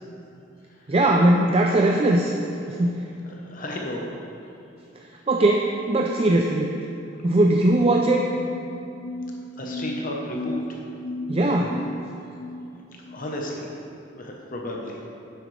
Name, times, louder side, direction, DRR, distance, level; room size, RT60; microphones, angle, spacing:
voice 1, 0.9-2.3 2.7-3.0 5.3-6.7 7.2-8.3 11.3-11.8, right 1 dB, 30° right, 1 dB, 0.4 m, -20 dB
voice 2, 3.2-4.0 9.6-10.8 13.1-13.7 14.1-15.0, left 1 dB, 45° left, -1 dB, 0.9 m, -33 dB
sound 1, 7.5-13.3, left 1 dB, 85° left, 1.1 m, -36 dB
10.0 x 7.8 x 3.3 m, 2.8 s
head